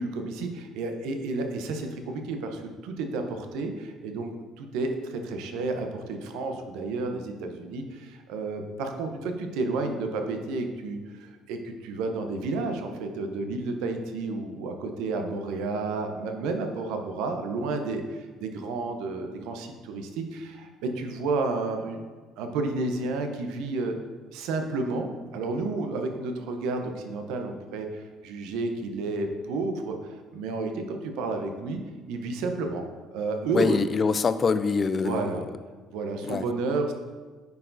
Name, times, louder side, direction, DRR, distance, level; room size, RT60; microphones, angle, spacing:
voice 1, 0.0-22.0 22.4-24.0 24.3-31.8 32.1-32.8 33.1-33.8 35.0-35.4 35.9-36.9, right 3 dB, 75° right, 5 dB, 0.7 m, -31 dB
voice 2, 33.5-35.4 36.2-36.4, left 5 dB, 40° left, 12 dB, 0.4 m, -25 dB
9.5 x 4.6 x 2.6 m, 1.4 s
supercardioid pair, 70°, 0 cm